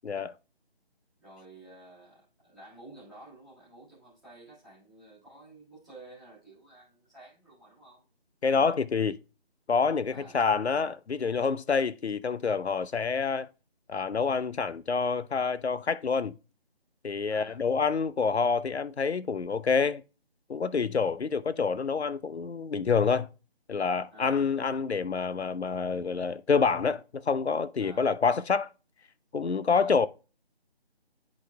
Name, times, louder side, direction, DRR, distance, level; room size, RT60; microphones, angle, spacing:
voice 1, 0.0-0.3 8.4-9.2 9.7-13.5 13.9-16.4 17.0-20.0 20.5-23.3 23.7-28.7 29.3-30.1, left 5 dB, 90° left, 0.6 m, -27 dB
voice 2, 1.2-8.0 10.1-10.4 17.3-17.6 20.9-21.3 24.1-24.5 27.8-28.1 29.7-30.0, right 2 dB, ahead, 1.4 m, -52 dB
11.0 x 4.1 x 2.2 m
figure-of-eight pair, 160°, 32 cm